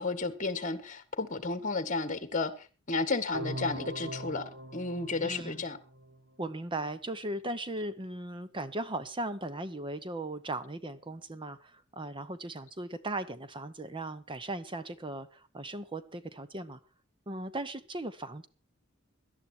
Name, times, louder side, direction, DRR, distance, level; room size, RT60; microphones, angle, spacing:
voice 1, 0.0-2.5 2.9-5.8, left 3 dB, 40° left, 12 dB, 1.7 m, -32 dB
sound 1, 3.3-6.3, right 1 dB, 60° right, 1.4 m, -41 dB
voice 2, 5.2-5.6 6.4-16.8 17.3-18.5, right 2 dB, 25° right, 12 dB, 0.9 m, -38 dB
18.0 x 12.0 x 4.4 m, 0.34 s
head